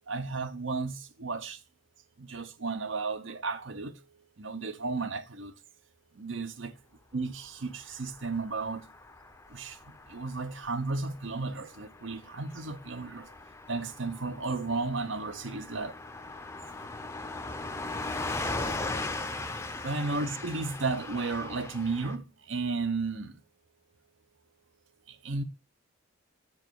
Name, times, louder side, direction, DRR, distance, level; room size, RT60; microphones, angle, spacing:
voice 1, 0.1-1.6 2.2-4.0 4.4-5.5 6.2-6.7 7.1-8.9 9.5-9.8 10.1-13.3 13.7-15.9 19.8-23.3 25.1-25.4, right 3 dB, 65° right, 0.8 m, -33 dB
Car passing by / Truck, 7.8-22.2, left 2 dB, 15° left, 0.5 m, -39 dB
8.2 x 4.8 x 4.6 m
head